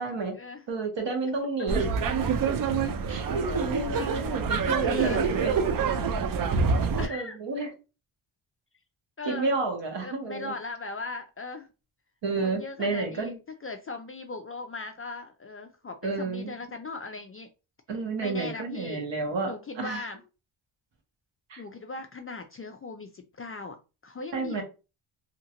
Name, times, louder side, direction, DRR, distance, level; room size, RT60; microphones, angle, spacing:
voice 1, 0.0-0.3 0.7-1.8 3.1-5.5 6.8-7.7 9.2-10.5 12.2-13.4 16.0-16.5 17.9-20.0 21.5-21.6 24.3-24.6, right 3 dB, 60° right, 1.2 m, -31 dB
sound 1, 1.7-7.1, right 5 dB, 45° right, 0.4 m, -26 dB
voice 2, 4.8-5.3 7.0-7.4 9.2-9.5 10.0-11.7 12.4-13.3 13.6-17.5 18.2-19.1 19.4-20.2 21.6-23.8 24.0-24.6, left 3 dB, 30° left, 0.3 m, -38 dB
2.8 x 2.5 x 2.8 m
cardioid pair, 80°, 49 cm